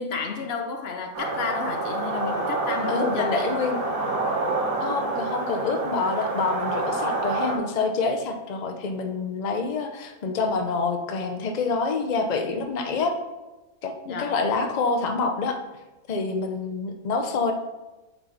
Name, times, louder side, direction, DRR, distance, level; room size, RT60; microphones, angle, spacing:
voice 1, 0.0-3.5 14.0-14.4, left 5 dB, 55° left, 4 dB, 0.7 m, -31 dB
sound 1, 1.1-7.6, right 2 dB, 65° right, 1.6 m, -27 dB
voice 2, 2.9-3.8 4.8-13.1 13.8-13.9 14.2-15.6 16.1-17.5, left 4 dB, 70° left, 4 dB, 0.4 m, -27 dB
7.9 x 4.3 x 4.0 m, 1.1 s
omnidirectional pair, 1.6 m